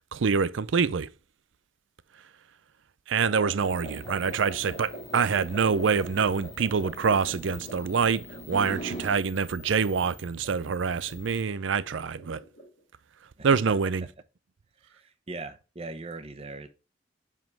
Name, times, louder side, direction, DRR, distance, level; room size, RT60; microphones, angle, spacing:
voice 1, 0.1-1.1 3.1-12.4 13.4-14.1, right 5 dB, 80° right, 0.5 m, -26 dB
sound 1, 3.2-12.8, right 1 dB, 55° left, 3.9 m, -44 dB
sound 2, 3.6-11.4, equal, 35° left, 1.6 m, -43 dB
voice 2, 14.9-16.7, right 2 dB, 30° right, 0.8 m, -40 dB
7.5 x 3.7 x 4.5 m
head